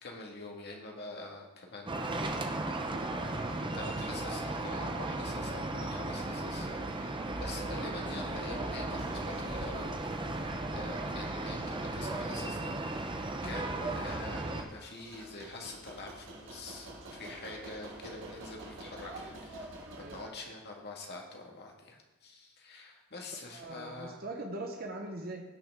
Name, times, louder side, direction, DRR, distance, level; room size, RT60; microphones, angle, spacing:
voice 1, 0.0-2.7 3.7-10.0 10.7-24.2, left 2 dB, 50° left, 0 dB, 1.9 m, -46 dB
sound 1, 1.9-14.6, right 2 dB, 20° right, 0.8 m, -35 dB
sound 2, 8.9-20.3, right 2 dB, 60° right, 1.8 m, -50 dB
voice 2, 20.0-20.3 23.5-25.4, right 2 dB, 45° right, 2 dB, 1.1 m, -41 dB
17.5 x 5.9 x 3.7 m, 1.1 s
head